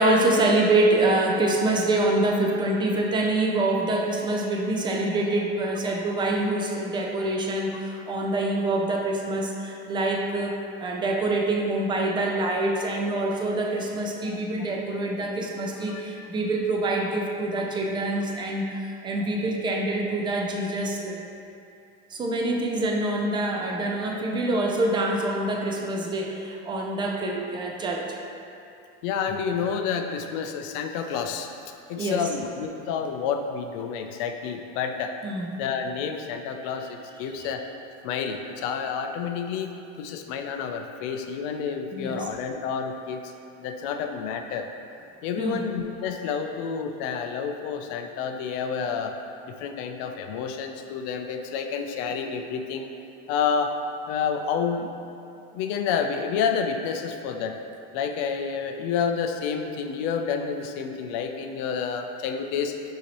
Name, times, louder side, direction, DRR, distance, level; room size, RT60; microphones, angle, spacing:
voice 1, 0.0-21.2 22.1-28.1 32.0-32.3 35.2-35.5 37.4-37.5 41.9-42.3 45.4-45.7, right 2 dB, 15° right, 0 dB, 0.3 m, -25 dB
voice 2, 15.9-16.3 29.0-31.5 31.9-35.1 35.6-37.6 38.0-43.3 43.6-44.7 45.2-49.1 49.5-52.9 53.3-53.7 54.1-54.9 55.5-57.6 57.9-62.8, left 6 dB, 55° left, 5 dB, 0.4 m, -29 dB
5.8 x 2.8 x 2.9 m, 2.6 s
supercardioid pair, 120°, 34 cm